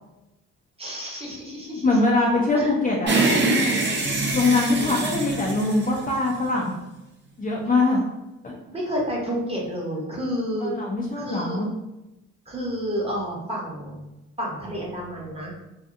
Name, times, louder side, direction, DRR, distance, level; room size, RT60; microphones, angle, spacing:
voice 1, 0.8-2.0 2.5-2.7 4.6-5.0 8.7-10.7 11.2-11.6 12.5-14.0 14.4-15.5, equal, 20° right, -4 dB, 0.9 m, -30 dB
voice 2, 1.8-3.2 4.3-6.7 7.4-8.0 8.4-8.5 10.6-11.7, left 2 dB, 30° left, -2 dB, 0.5 m, -22 dB
sound 1, 3.1-6.5, right 2 dB, 40° right, 0.6 m, -24 dB
2.7 x 2.3 x 2.5 m, 0.96 s
cardioid pair, 90°, 30 cm